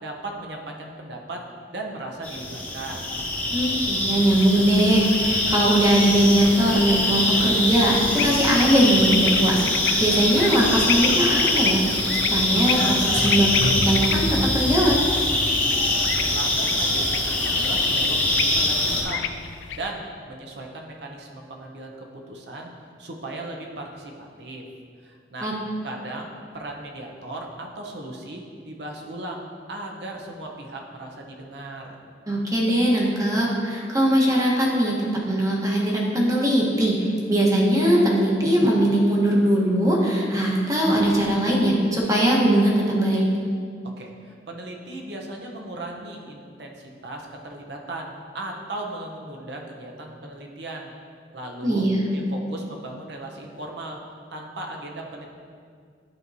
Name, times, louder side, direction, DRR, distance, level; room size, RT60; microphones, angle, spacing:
voice 1, 0.0-1.4 1.7-3.1 15.9-16.0 16.3-19.3 19.7-22.0 22.3-24.6 25.0-25.5 25.8-31.9 44.0-50.9 51.3-51.8 52.1-54.0 54.3-55.3, right 2 dB, 70° right, 1 dB, 0.8 m, -37 dB
sound 1, 2.2-19.0, left 1 dB, 10° left, 1.2 m, -23 dB
voice 2, 3.5-9.6 10.0-15.0 25.4-25.5 32.3-43.2 51.6-52.0, right 1 dB, 20° right, -3 dB, 1.1 m, -20 dB
sound 2, 4.0-19.9, left 9 dB, 80° left, 0.3 m, -33 dB
10.5 x 4.5 x 2.7 m, 2.2 s
head